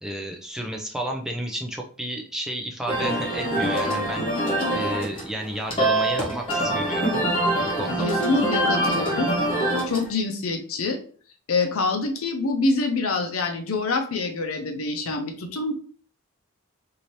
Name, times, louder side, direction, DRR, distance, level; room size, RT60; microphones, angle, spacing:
voice 1, 0.0-4.3 4.7-7.1 7.6-8.1, right 1 dB, 5° right, 1 dB, 0.4 m, -32 dB
sound 1, 2.9-10.1, right 1 dB, 25° left, 1.1 m, -24 dB
voice 2, 8.0-9.3 9.9-11.0 11.5-15.8, left 3 dB, 80° left, 5 dB, 0.6 m, -26 dB
2.8 x 2.7 x 3.1 m, 0.44 s
head